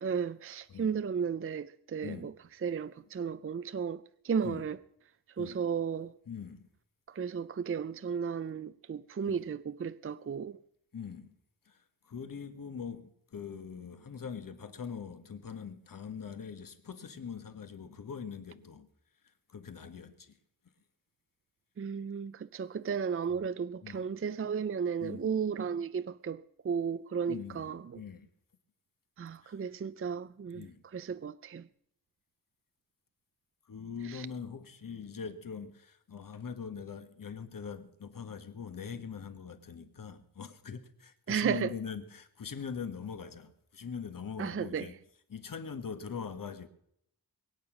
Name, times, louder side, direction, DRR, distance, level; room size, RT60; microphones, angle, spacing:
voice 1, 0.0-2.3 2.6-4.8 5.4-6.1 7.1-10.6 21.8-28.0 29.2-31.7 34.0-34.3 41.3-41.7 44.4-44.9, right 6 dB, 35° right, 0.5 m, -34 dB
voice 2, 2.0-2.3 4.4-4.6 5.4-5.6 6.3-6.7 9.3-9.4 10.9-11.3 11.6-18.9 19.5-20.4 23.8-24.0 25.0-25.3 27.3-28.3 29.4-29.5 30.5-30.8 33.7-44.9 45.3-46.7, left 6 dB, 60° left, 1.6 m, -42 dB
22.0 x 9.0 x 6.2 m
wide cardioid pair, 125°, 38 cm